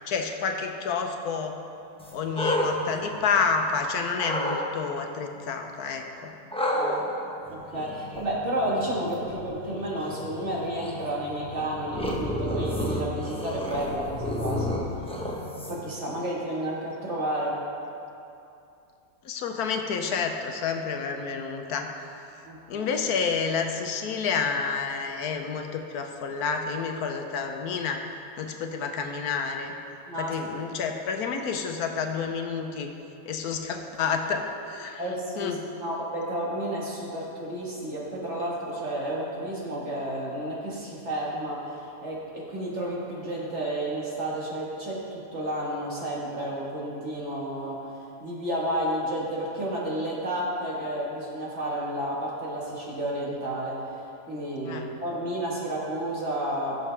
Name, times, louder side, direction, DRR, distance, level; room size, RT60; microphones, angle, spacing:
voice 1, 0.1-1.6 2.1-6.3 19.2-21.9 22.7-28.0 28.4-29.7 30.2-32.9 33.3-35.0 35.4-35.6 54.6-54.8, left 5 dB, 85° left, 4 dB, 1.3 m, -29 dB
sound 1, 2.0-3.7 4.1-4.6 6.5-16.0, equal, 5° left, 0.6 m, -31 dB
voice 2, 6.7-7.1 7.5-14.7 15.7-17.6 22.4-22.9 30.1-30.3 35.0-47.8 48.2-53.8 54.3-56.7, right 1 dB, 50° right, -4 dB, 1.9 m, -31 dB
15.5 x 6.6 x 3.3 m, 2.7 s
omnidirectional pair, 1.6 m